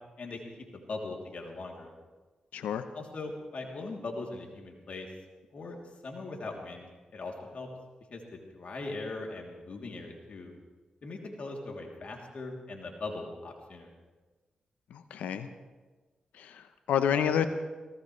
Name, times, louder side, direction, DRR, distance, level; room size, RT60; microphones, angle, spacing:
voice 1, 0.7-1.9 2.9-5.1 5.5-5.8 6.0-7.7 8.1-10.5 11.0-13.9, left 3 dB, 60° left, 0 dB, 3.0 m, -40 dB
voice 2, 2.5-2.9 14.9-15.5 16.3-17.5, left 8 dB, 90° left, 10 dB, 0.8 m, -29 dB
23.5 x 17.5 x 3.3 m, 1.3 s
supercardioid pair, 50°, 3 cm